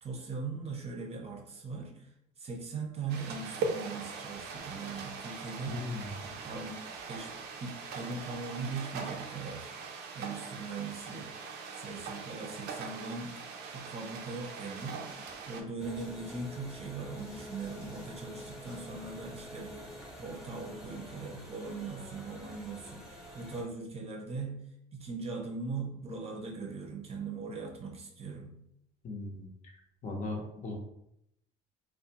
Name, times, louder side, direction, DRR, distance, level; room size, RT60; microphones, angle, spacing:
voice 1, 0.0-2.1 2.4-5.8 6.2-6.8 7.1-9.7 10.1-11.3 11.7-13.4 13.7-19.9 20.2-24.6 24.9-28.5, right 4 dB, 35° right, 0 dB, 0.6 m, -40 dB
sound 1, 3.1-15.6, right 4 dB, 80° right, 0.4 m, -41 dB
voice 2, 5.7-6.1 29.0-29.7 30.0-30.8, left 2 dB, 45° left, 1 dB, 0.6 m, -38 dB
Snare drum, 14.8-15.4 16.0-16.6 17.2-19.0, left 2 dB, 85° left, 1.1 m, -53 dB
sound 2, 15.8-23.6, equal, ahead, 0.8 m, -47 dB
2.4 x 2.1 x 2.8 m, 0.76 s
cardioid pair, 110°, 17 cm